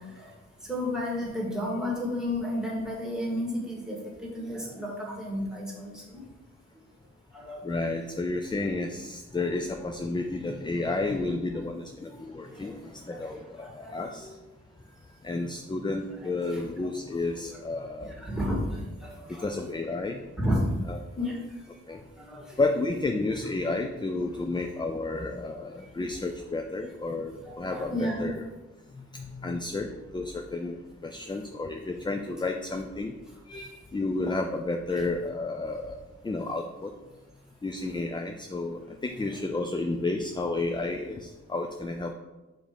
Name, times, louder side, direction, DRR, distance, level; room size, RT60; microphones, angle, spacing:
voice 1, 0.6-6.2 7.3-7.6 12.5-12.7 13.1-14.0 14.2-14.3 16.4-16.6 18.0-19.5 20.4-20.7 21.2-21.4 22.2-22.6 27.4-28.3 38.8-38.9, left 1 dB, ahead, -3 dB, 1.7 m, -32 dB
voice 2, 7.6-14.3 15.2-18.1 19.3-20.2 20.9-21.0 21.9-22.0 22.6-28.5 28.9-33.1 33.5-36.0 36.2-36.9 37.6-42.1, left 2 dB, 15° left, 4 dB, 0.4 m, -31 dB
5.2 x 3.7 x 5.0 m, 1.1 s
wide cardioid pair, 95°, 30 cm